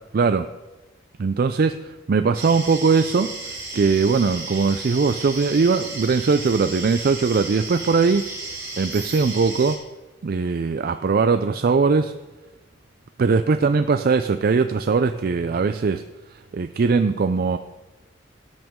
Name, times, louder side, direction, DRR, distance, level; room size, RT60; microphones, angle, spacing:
voice 1, 0.1-0.5 1.2-8.3 8.8-9.8 10.2-12.1 13.2-16.0 16.3-17.6, right 4 dB, 45° right, 9 dB, 0.4 m, -20 dB
sound 1, 2.3-9.7, right 2 dB, 15° right, 3.9 m, -34 dB
17.5 x 8.8 x 3.7 m, 1.2 s
head